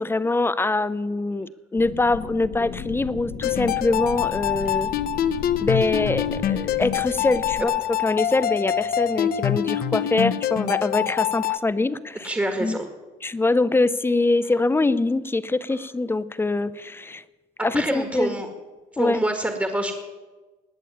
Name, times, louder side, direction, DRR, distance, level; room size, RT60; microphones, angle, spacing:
voice 1, 0.0-4.9 5.6-7.7 8.0-12.3 12.6-12.8 13.2-17.2 17.6-18.3 19.0-19.2, left 2 dB, 15° left, 16 dB, 0.6 m, -24 dB
sound 1, 1.8-7.6, left 6 dB, 85° left, 3.5 m, -36 dB
sound 2, 3.4-11.6, left 11 dB, 60° left, 0.9 m, -25 dB
voice 2, 12.2-12.9 17.7-18.5 19.0-20.0, right 1 dB, 10° right, 5 dB, 1.8 m, -26 dB
19.5 x 6.8 x 9.4 m, 1.2 s
cardioid pair, 110°, 17 cm